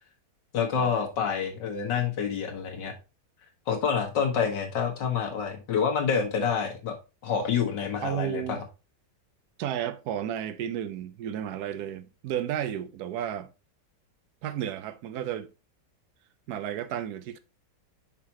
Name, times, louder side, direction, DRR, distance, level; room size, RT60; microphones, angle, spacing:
voice 1, 0.5-2.9 3.7-6.9 7.2-8.6, left 6 dB, 80° left, 2.1 m, -27 dB
voice 2, 8.0-8.6 9.6-13.5 14.4-15.5 16.5-17.4, right 10 dB, 65° right, 1.2 m, -32 dB
6.0 x 5.8 x 2.8 m
omnidirectional pair, 1.9 m